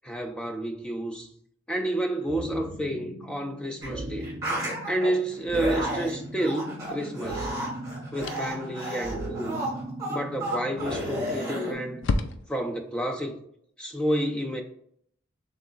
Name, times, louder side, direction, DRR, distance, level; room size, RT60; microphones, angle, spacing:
voice 1, 0.0-1.3 1.7-4.3 4.9-7.5 8.1-9.6 10.1-12.0 12.5-13.4 13.8-14.6, right 1 dB, 5° left, 0.4 m, -30 dB
sound 1, 2.3-12.3, right 1 dB, 50° right, 0.5 m, -38 dB
sound 2, 3.8-3.9 4.2-5.1 5.5-11.7, right 1 dB, 15° right, 1.3 m, -33 dB
sound 3, 6.8-7.0 8.2-8.7 10.8-11.2 11.5-11.6 12.0-12.8, left 3 dB, 70° left, 0.4 m, -30 dB
3.4 x 3.1 x 3.8 m
head